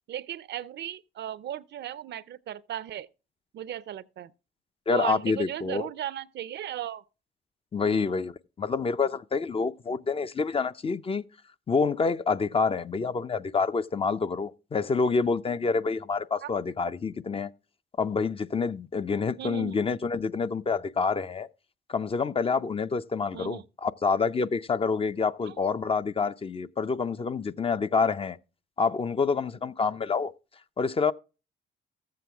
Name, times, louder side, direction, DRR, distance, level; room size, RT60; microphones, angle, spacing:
voice 1, 0.1-3.1 3.5-4.3 4.9-7.0 7.8-8.1 16.4-16.5 19.4-19.8 23.3-23.7 25.4-25.6, right 11 dB, 60° right, 0.5 m, -36 dB
voice 2, 4.9-5.9 7.7-11.2 11.7-17.5 18.0-21.5 21.9-28.4 28.8-30.3 30.8-31.1, left 4 dB, 30° left, 0.5 m, -27 dB
14.0 x 7.7 x 3.4 m
cardioid pair, 90°, 20 cm